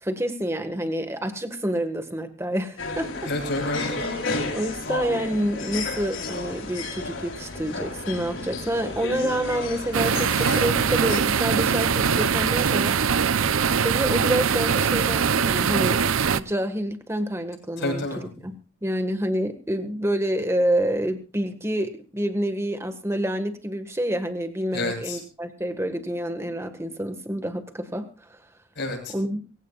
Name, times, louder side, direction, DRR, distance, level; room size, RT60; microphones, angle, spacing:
voice 1, 0.0-3.1 4.5-13.0 13.8-18.5 18.8-28.1 29.1-29.4, right 1 dB, 15° right, 8 dB, 1.6 m, -28 dB
sound 1, 2.8-11.2, left 3 dB, 70° left, 3.7 m, -32 dB
voice 2, 3.3-3.9 17.8-18.2 24.7-25.2 28.8-29.1, left 2 dB, 55° left, 1 dB, 7.4 m, -28 dB
sound 2, 9.9-16.4, right 6 dB, 80° right, 0.6 m, -22 dB
23.5 x 16.0 x 2.4 m, 0.34 s
head